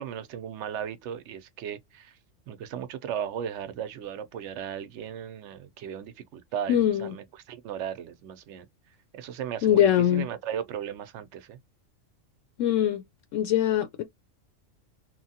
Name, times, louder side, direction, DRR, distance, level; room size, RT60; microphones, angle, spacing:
voice 1, 0.0-2.2 2.5-8.7 9.1-11.6, right 9 dB, 70° right, 0.9 m, -36 dB
voice 2, 6.7-7.1 9.6-10.3 12.6-13.0 13.3-14.0, left 10 dB, 75° left, 0.9 m, -22 dB
3.0 x 2.2 x 2.7 m
omnidirectional pair, 1.3 m